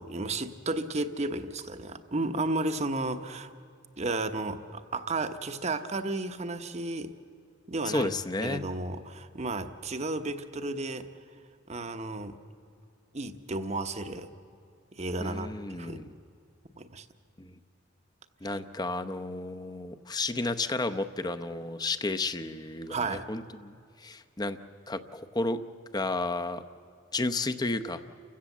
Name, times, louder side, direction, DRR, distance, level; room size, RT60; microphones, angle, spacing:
voice 1, 0.0-3.5 4.0-7.1 7.7-8.1 8.4-11.1 11.7-12.4 13.1-14.3 14.9-16.0 16.8-17.1 22.9-23.3, right 2 dB, 35° right, 8 dB, 1.0 m, -33 dB
voice 2, 7.8-8.6 15.2-16.1 17.4-17.5 18.4-24.6 24.9-25.6 25.9-26.6 27.1-28.0, left 2 dB, 20° left, 9 dB, 0.8 m, -32 dB
29.5 x 16.0 x 7.3 m, 2.5 s
head